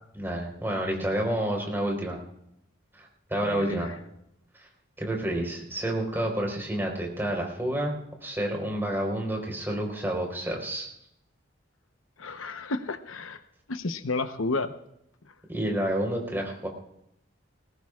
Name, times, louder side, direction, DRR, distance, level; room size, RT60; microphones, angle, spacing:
voice 1, 0.1-2.2 3.0-3.9 4.6-4.7 5.0-7.9 8.2-10.9 15.5-16.7, right 1 dB, 10° right, 1 dB, 4.2 m, -29 dB
voice 2, 3.5-4.0 12.2-13.4 13.7-14.7 15.2-15.3, left 3 dB, 85° left, 9 dB, 0.9 m, -32 dB
21.5 x 18.5 x 2.4 m, 0.78 s
head